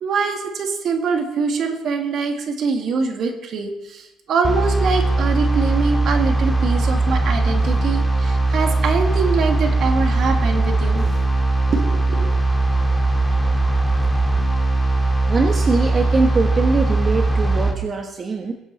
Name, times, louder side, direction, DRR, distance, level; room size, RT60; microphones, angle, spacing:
voice 1, 0.0-11.1 11.7-12.3, right 5 dB, 55° right, 3 dB, 2.2 m, -23 dB
sound 1, 4.4-17.7, right 2 dB, ahead, 2.2 m, -19 dB
voice 2, 15.3-18.5, right 4 dB, 35° right, 2 dB, 1.2 m, -22 dB
21.5 x 8.1 x 4.2 m, 0.91 s
cardioid pair, 110°, 0 cm